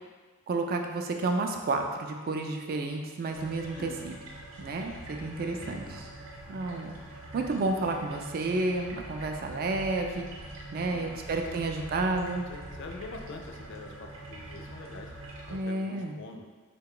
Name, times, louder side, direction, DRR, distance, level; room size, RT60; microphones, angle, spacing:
voice 1, 0.5-4.2 4.6-6.1 6.5-7.0 7.3-12.5 15.5-16.2, right 3 dB, 45° right, 4 dB, 0.3 m, -31 dB
sound 1, 3.3-15.6, right 1 dB, 65° right, 0.7 m, -44 dB
voice 2, 3.7-4.1 5.3-6.1 10.7-11.3 12.5-15.1 15.5-16.4, left 3 dB, 55° left, 3 dB, 0.4 m, -45 dB
3.6 x 2.2 x 3.7 m, 1.4 s
head